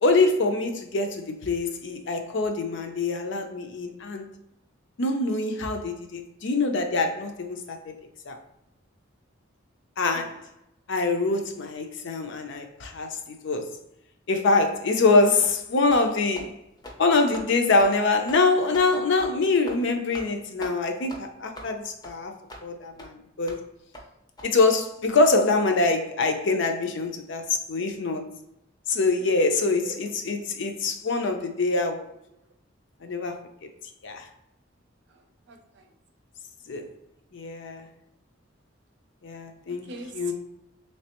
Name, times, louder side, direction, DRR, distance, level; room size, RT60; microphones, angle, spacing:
voice 1, 0.0-4.3 5.0-8.0 8.3-8.4 10.0-10.4 10.9-13.7 14.3-16.5 17.0-22.3 22.6-23.6 24.4-28.3 28.9-32.1 33.0-33.4 34.0-34.3 36.7-36.9 37.3-37.9 39.2-39.9 40.1-40.3, left 3 dB, 65° left, 5 dB, 0.5 m, -24 dB
sound 1, 15.4-15.6 15.9-16.1 16.3-16.5 16.8-17.0 17.3-17.5 17.8-17.9 18.3-18.4 18.7-18.9 19.2-19.3 19.7-19.8 20.1-20.3 20.6-20.8 21.1-21.2 21.5-21.7 22.0-22.1 22.5-22.6 23.0-23.1 23.5-23.6 23.9-24.1 24.4-24.5, equal, 20° left, 0.5 m, -41 dB
voice 2, 35.1-35.9 39.7-40.3, right 2 dB, 65° right, 5 dB, 0.6 m, -43 dB
3.2 x 3.2 x 2.9 m, 0.83 s
head